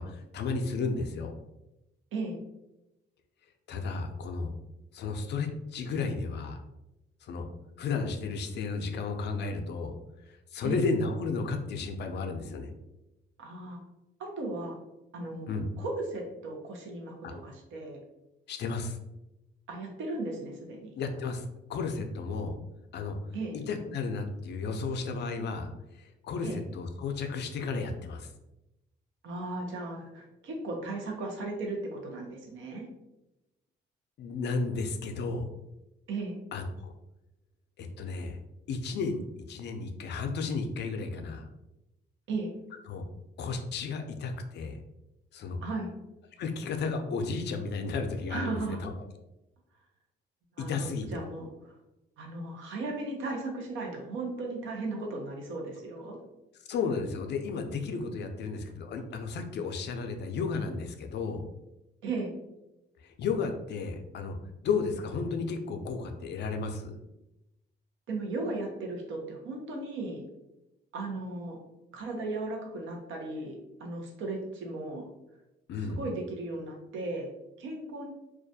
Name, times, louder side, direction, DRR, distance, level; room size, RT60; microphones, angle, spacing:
voice 1, 0.0-1.3 3.7-4.5 4.9-6.6 7.2-7.5 7.8-9.9 10.2-12.7 15.5-15.6 17.2-17.3 18.5-19.0 21.0-22.6 22.9-23.2 23.5-28.3 34.2-35.4 36.5-36.9 37.8-38.4 38.7-39.2 39.5-41.5 42.9-43.0 43.4-44.8 45.3-45.6 46.4-48.9 50.6-51.2 56.7-61.4 63.0-64.4 64.6-66.9 75.7-76.0, left 4 dB, 60° left, 5 dB, 0.4 m, -33 dB
voice 2, 13.4-13.8 14.2-14.8 15.1-17.1 17.4-18.0 19.7-20.9 23.3-23.6 26.4-26.6 29.2-32.9 36.1-36.4 42.3-42.5 45.6-45.9 48.3-48.9 50.6-51.5 52.2-56.2 62.0-62.3 68.1-70.2 70.9-71.6 71.9-75.0 76.0-77.3 77.6-78.1, right 2 dB, 75° right, 1 dB, 0.7 m, -36 dB
2.3 x 2.1 x 2.6 m, 0.93 s
cardioid pair, 90°, 20 cm